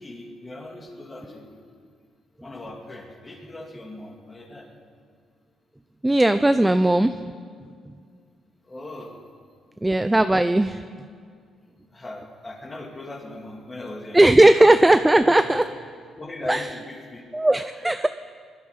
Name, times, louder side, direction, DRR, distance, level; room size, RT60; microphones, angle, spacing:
voice 1, 0.0-1.6 2.3-4.7 8.6-9.4 9.7-9.9 11.9-14.2 15.2-15.6 16.2-17.3, left 2 dB, 25° left, 1 dB, 2.3 m, -38 dB
voice 2, 6.0-7.1 9.8-10.8 14.1-15.6 16.5-16.7 17.3-18.1, right 1 dB, 10° right, 10 dB, 0.4 m, -17 dB
21.0 x 11.5 x 5.2 m, 2.1 s
cardioid pair, 90°, 0 cm